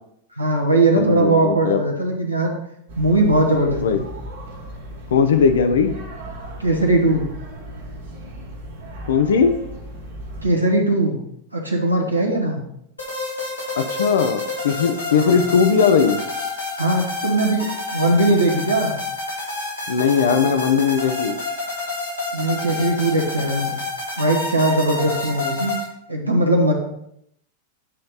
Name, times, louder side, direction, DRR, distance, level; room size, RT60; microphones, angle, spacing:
voice 1, 0.4-2.5 3.0-4.0 6.6-7.3 10.4-11.2 11.5-12.6 15.1-15.4 16.8-18.9 22.3-23.8 24.2-25.7 26.1-26.7, right 2 dB, 85° right, 1 dB, 1.3 m, -19 dB
voice 2, 1.0-1.8 3.8-4.0 5.1-6.0 9.1-9.6 13.8-16.2 19.9-21.4, left 6 dB, 65° left, 8 dB, 0.5 m, -18 dB
sound 1, 2.9-10.5, right 1 dB, 60° right, 1.2 m, -36 dB
sound 2, 13.0-25.9, left 2 dB, 80° left, 1.9 m, -29 dB
8.5 x 3.2 x 5.4 m, 0.75 s
figure-of-eight pair, 90°, 0 cm